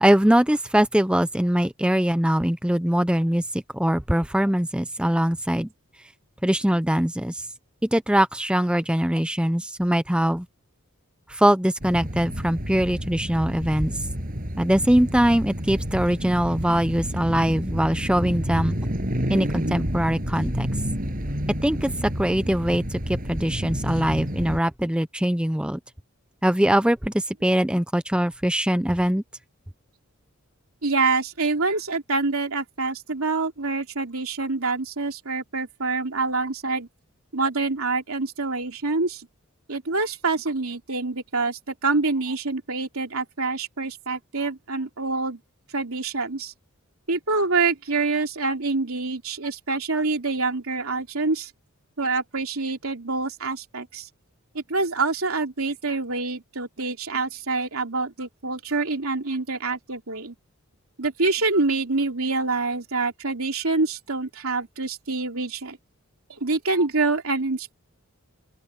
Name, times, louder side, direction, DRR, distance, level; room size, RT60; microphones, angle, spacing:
voice 1, 0.0-5.7 6.4-7.5 7.8-10.5 11.3-13.9 14.6-18.8 19.3-20.7 21.6-25.8 26.4-29.2, equal, 5° right, 0.6 m, -22 dB
sound 1, 11.8-24.6, equal, 40° right, 7.6 m, -29 dB
voice 2, 30.8-36.9 37.3-39.2 39.7-45.4 45.7-46.5 47.1-51.5 52.0-54.1 54.5-60.3 61.0-65.8 66.3-67.7, right 3 dB, 80° right, 3.0 m, -26 dB
open air
head